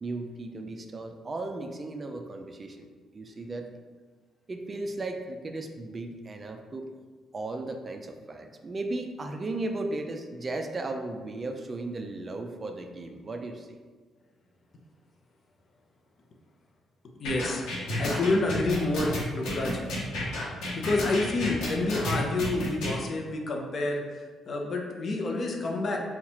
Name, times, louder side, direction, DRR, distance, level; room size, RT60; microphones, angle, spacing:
voice 1, 0.0-2.9 3.1-3.7 4.5-6.9 7.3-13.8, right 2 dB, 35° right, 5 dB, 0.4 m, -36 dB
sound 1, 17.2-22.9, left 1 dB, 85° left, 1.2 m, -31 dB
voice 2, 17.2-17.6 18.0-19.8 20.2-20.3 20.6-26.0, left 2 dB, 50° left, 1 dB, 0.7 m, -29 dB
4.3 x 2.4 x 4.2 m, 1.5 s
cardioid pair, 90°, 0 cm